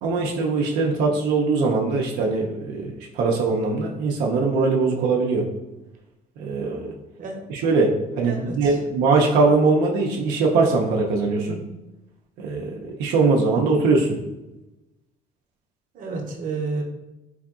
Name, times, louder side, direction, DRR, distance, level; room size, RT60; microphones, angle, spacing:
voice 1, 0.0-5.5 6.4-6.9 7.5-11.6 12.4-14.2, right 3 dB, 90° right, -1 dB, 0.5 m, -21 dB
voice 2, 7.2-7.5 8.2-8.7 15.9-16.8, right 3 dB, 55° right, 1 dB, 0.7 m, -31 dB
3.6 x 3.3 x 2.3 m, 0.99 s
cardioid pair, 110°, 17 cm